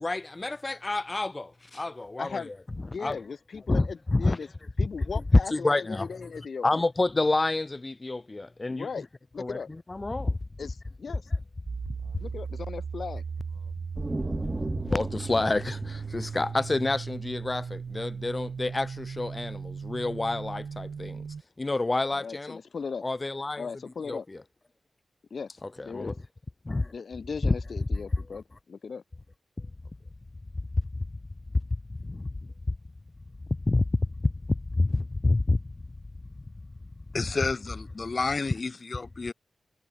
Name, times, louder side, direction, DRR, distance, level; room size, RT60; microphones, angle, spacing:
voice 1, 0.0-2.5 3.0-3.2 3.7-4.4 5.5-6.1 6.6-8.9 9.4-9.6 9.9-10.4 14.4-21.2 21.6-22.6 23.0-23.7 24.1-24.2 25.8-26.1 26.6-26.9 27.4-27.5 32.0-32.3 33.7-33.8 34.2-35.6, left 2 dB, 30° left, 0.8 m, -28 dB
voice 2, 2.2-2.5 2.9-4.5 4.8-6.8 8.7-9.1 9.3-9.7 10.6-11.3 12.2-13.2 22.1-23.1 23.6-24.3 25.3-26.1 26.9-29.0, left 5 dB, 65° left, 5.8 m, -37 dB
sound 1, 11.7-21.4, right 5 dB, 70° right, 1.8 m, -37 dB
sound 2, 13.9-17.6, right 2 dB, 25° right, 7.4 m, -36 dB
voice 3, 37.1-39.3, left 4 dB, 50° left, 5.8 m, -30 dB
cardioid pair, 55°, 0 cm